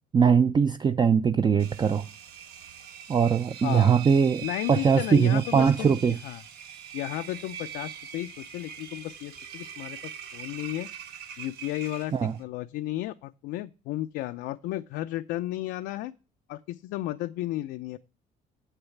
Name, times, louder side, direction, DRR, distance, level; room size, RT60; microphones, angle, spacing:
voice 1, 0.1-2.1 3.1-6.2 12.1-12.4, right 6 dB, 25° right, 0.4 m, -21 dB
Engine, 1.6-12.4, right 7 dB, 75° right, 1.3 m, -42 dB
voice 2, 3.6-4.0 4.4-6.4 6.9-10.9 11.4-12.1 12.4-16.1 16.5-18.0, left 15 dB, 90° left, 0.5 m, -34 dB
8.1 x 6.7 x 7.0 m
cardioid pair, 110°, 17 cm